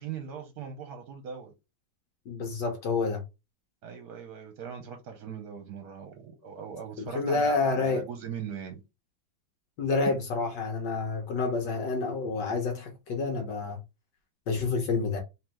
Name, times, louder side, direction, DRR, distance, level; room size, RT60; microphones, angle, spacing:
voice 1, 0.0-1.5 3.8-8.8, right 7 dB, 65° right, 1.1 m, -40 dB
voice 2, 2.3-3.2 7.0-8.0 9.8-13.8 14.5-15.2, left 4 dB, 70° left, 1.4 m, -28 dB
3.8 x 2.9 x 3.1 m
omnidirectional pair, 2.1 m